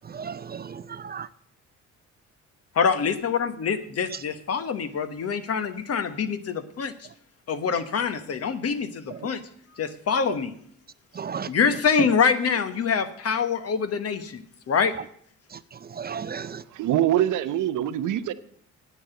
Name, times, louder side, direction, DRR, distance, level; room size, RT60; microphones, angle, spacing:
voice 1, 0.1-1.3 11.2-11.5 16.0-16.6, right 6 dB, 30° right, 0.5 m, -34 dB
voice 2, 2.7-6.9 7.5-9.4 9.8-10.5 11.5-15.0, left 6 dB, 55° left, 1.2 m, -25 dB
voice 3, 16.3-18.3, right 12 dB, 80° right, 0.8 m, -25 dB
9.6 x 8.5 x 8.0 m
cardioid pair, 90°, 30 cm